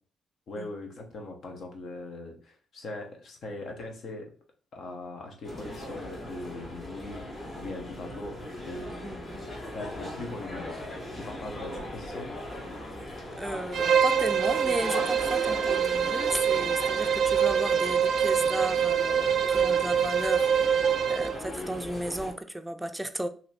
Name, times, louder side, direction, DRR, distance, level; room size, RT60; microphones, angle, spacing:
voice 1, 0.5-4.3 4.7-10.8 11.1-12.4, left 2 dB, 60° left, 1.1 m, -41 dB
sound 1, 5.4-22.3, left 1 dB, 30° left, 1.8 m, -39 dB
voice 2, 8.9-9.2 13.4-20.6 21.1-23.3, right 1 dB, 5° right, 0.5 m, -34 dB
Bowed string instrument, 13.7-21.4, right 8 dB, 60° right, 0.4 m, -25 dB
3.0 x 2.8 x 4.2 m
cardioid pair, 90°, 0 cm